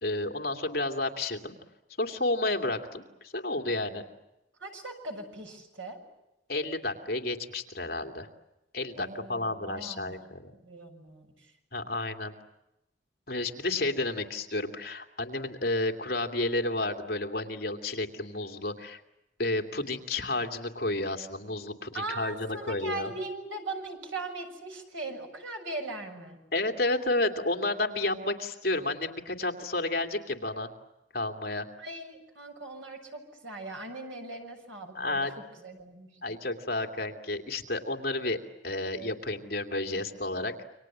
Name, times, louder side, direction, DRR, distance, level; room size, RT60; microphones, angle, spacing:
voice 1, 0.0-1.5 2.0-4.0 6.5-8.3 8.7-10.5 11.7-12.3 13.3-19.0 19.4-23.1 26.5-30.7 31.1-31.7 34.9-35.3 36.2-38.4 38.6-40.6, left 2 dB, 50° left, 6 dB, 2.7 m, -31 dB
voice 2, 4.6-6.0 9.0-10.4 10.6-11.3 21.9-26.4 31.8-35.3 35.6-36.4, right 2 dB, 85° right, 4 dB, 6.9 m, -39 dB
29.0 x 25.0 x 7.4 m, 0.93 s
head